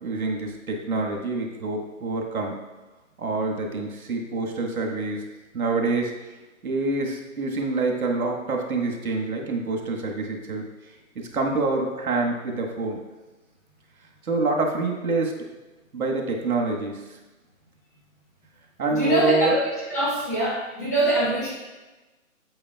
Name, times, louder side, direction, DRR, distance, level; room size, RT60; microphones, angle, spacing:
voice 1, 0.0-2.5 3.2-5.2 5.5-6.1 6.6-10.6 11.1-13.0 14.2-15.3 15.9-17.0 18.8-19.5, right 3 dB, 90° right, 1 dB, 1.6 m, -26 dB
voice 2, 18.9-21.5, right 1 dB, 10° left, -6 dB, 0.9 m, -24 dB
8.6 x 7.7 x 2.3 m, 1.1 s
hypercardioid pair, 175°, 42 cm